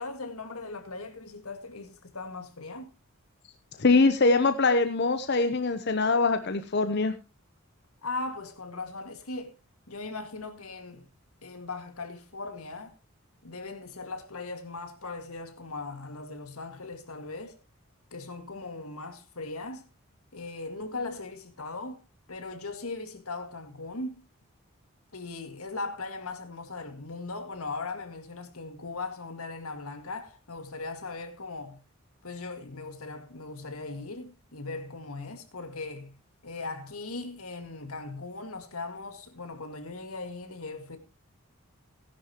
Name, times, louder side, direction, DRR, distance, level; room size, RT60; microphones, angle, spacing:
voice 1, 0.0-2.9 8.0-9.5 9.9-11.1 11.4-12.9 13.4-17.6 18.1-19.8 20.3-22.0 22.3-24.2 25.1-31.9 32.2-41.0, left 3 dB, 85° left, 2.0 m, -39 dB
voice 2, 3.8-7.1, left 3 dB, 50° left, 0.8 m, -23 dB
17.0 x 10.5 x 2.9 m
head